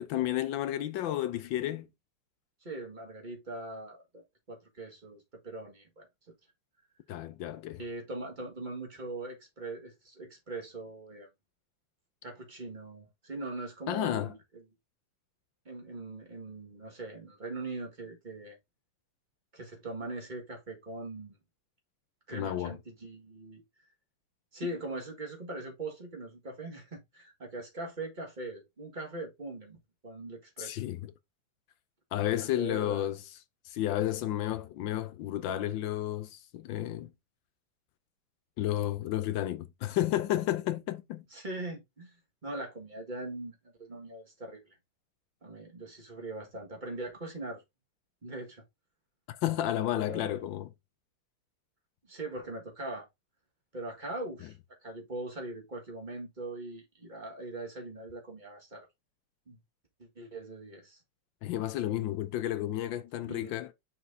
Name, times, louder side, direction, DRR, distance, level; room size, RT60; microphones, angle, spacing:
voice 1, 0.0-1.9 7.1-7.8 13.9-14.3 22.3-22.8 30.6-31.1 32.1-33.2 33.6-37.1 38.6-41.2 49.3-50.7 61.4-63.7, left 13 dB, 70° left, 1.2 m, -32 dB
voice 2, 2.6-6.1 7.8-11.3 12.2-14.6 15.7-18.6 19.5-21.4 22.3-23.6 24.5-30.8 32.4-33.1 41.3-44.8 45.4-47.6 48.2-48.6 50.0-50.5 52.0-53.1 53.7-54.6 54.8-58.9 59.5-59.6 60.0-61.0 63.3-63.6, right 2 dB, 25° right, 1.7 m, -41 dB
6.0 x 6.0 x 2.7 m
omnidirectional pair, 2.4 m